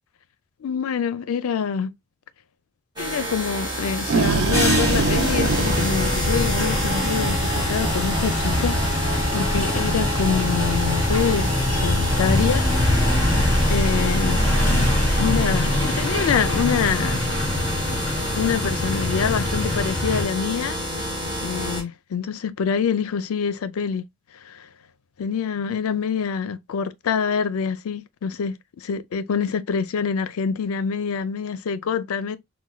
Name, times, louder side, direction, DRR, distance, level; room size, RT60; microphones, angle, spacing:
voice 1, 0.6-1.9 3.0-13.4 13.7-14.5 15.1-17.2 18.4-20.8 21.4-24.1 24.4-24.7 25.2-32.4, left 6 dB, 90° left, 0.4 m, -26 dB
sound 1, 3.0-21.8, equal, 20° right, 0.9 m, -28 dB
sound 2, 3.7-7.0, right 3 dB, 65° right, 0.5 m, -24 dB
sound 3, 4.5-20.3, left 1 dB, 15° left, 1.8 m, -23 dB
4.2 x 2.2 x 2.2 m
head